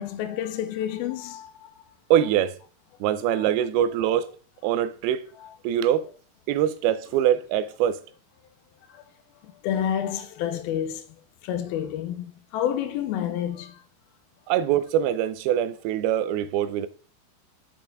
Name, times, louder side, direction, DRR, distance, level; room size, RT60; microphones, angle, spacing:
voice 1, 0.0-1.7 3.2-3.4 8.9-9.0 9.4-11.1 11.4-13.8, left 10 dB, 90° left, 2.5 m, -29 dB
voice 2, 2.1-2.6 3.0-4.3 4.6-5.3 5.6-6.1 6.5-8.0 14.5-16.9, right 10 dB, 85° right, 2.5 m, -23 dB
7.3 x 5.1 x 4.5 m
omnidirectional pair, 4.3 m